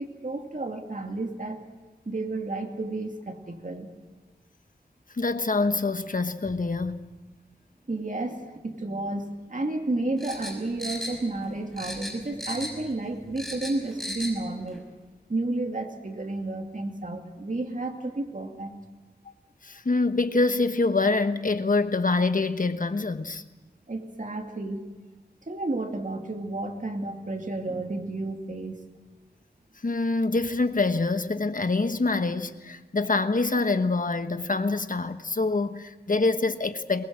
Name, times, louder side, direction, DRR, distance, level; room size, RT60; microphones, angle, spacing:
voice 1, 0.0-1.6 2.1-3.9 7.9-14.8 15.3-18.7 23.9-24.8 25.5-28.8, right 2 dB, 50° right, 2.6 m, -31 dB
voice 2, 5.1-7.1 19.6-23.4 29.8-37.1, left 3 dB, 50° left, 1.3 m, -25 dB
sound 1, 10.2-11.5 11.8-12.9 13.2-14.4 14.7-14.8, equal, ahead, 5.7 m, -36 dB
23.0 x 20.5 x 7.6 m
wide cardioid pair, 60°, 17 cm